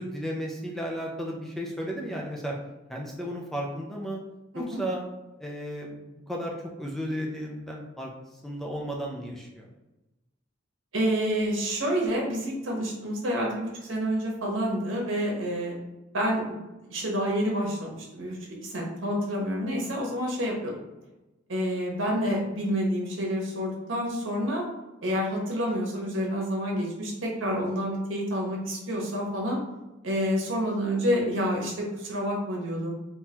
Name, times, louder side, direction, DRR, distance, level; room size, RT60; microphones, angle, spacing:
voice 1, 0.0-2.6 2.9-4.2 4.5-5.0 5.4-8.1 8.4-9.7, equal, ahead, -1 dB, 0.4 m, -34 dB
voice 2, 10.9-15.7 16.1-16.6 16.9-18.4 18.6-20.8 21.5-24.6 25.0-29.6 30.0-32.9, equal, 70° right, -2 dB, 1.1 m, -28 dB
3.7 x 2.7 x 2.8 m, 1.0 s
head